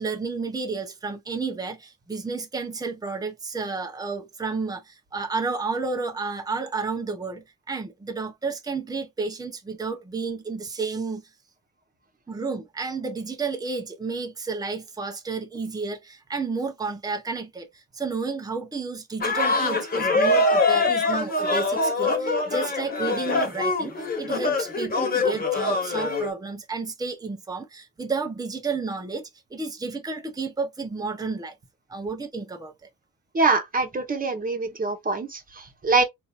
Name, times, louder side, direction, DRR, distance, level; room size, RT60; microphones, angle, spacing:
voice 1, 0.0-11.3 12.3-31.5 31.9-32.7, right 4 dB, 10° right, 0.8 m, -31 dB
sound 1, 19.2-26.3, left 2 dB, 30° left, 1.7 m, -24 dB
voice 2, 33.3-36.0, right 3 dB, 30° right, 1.3 m, -24 dB
3.8 x 2.7 x 2.5 m
cardioid pair, 90°, 30 cm